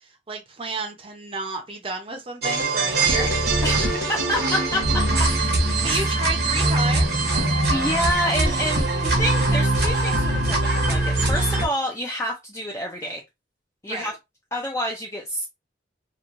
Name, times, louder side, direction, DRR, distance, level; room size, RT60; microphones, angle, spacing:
voice 1, 0.3-3.6 5.8-7.3 13.8-14.1, right 3 dB, 30° right, 0.6 m, -31 dB
sound 1, 2.4-11.7, right 2 dB, 60° right, 0.9 m, -22 dB
voice 2, 3.6-4.8 5.9-6.1 7.7-8.9 9.2-13.2 13.8-14.2 14.5-15.5, equal, 15° left, 0.4 m, -28 dB
3.0 x 2.2 x 2.5 m
head